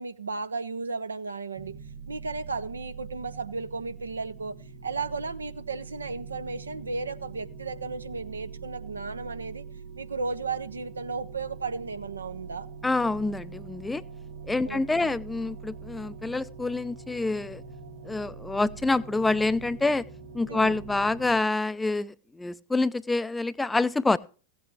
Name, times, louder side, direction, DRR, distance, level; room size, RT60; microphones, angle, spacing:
voice 1, 0.0-1.8 2.1-4.5 4.8-9.6 10.0-12.7 14.7-15.2 20.5-20.8, right 4 dB, 75° right, 0.8 m, -34 dB
sound 1, 1.6-21.4, right 5 dB, 50° right, 2.0 m, -43 dB
voice 2, 12.8-14.0 14.5-17.6 18.0-20.0 20.3-24.2, left 3 dB, 10° left, 0.5 m, -27 dB
16.5 x 8.3 x 3.1 m
figure-of-eight pair, 90°, 0 cm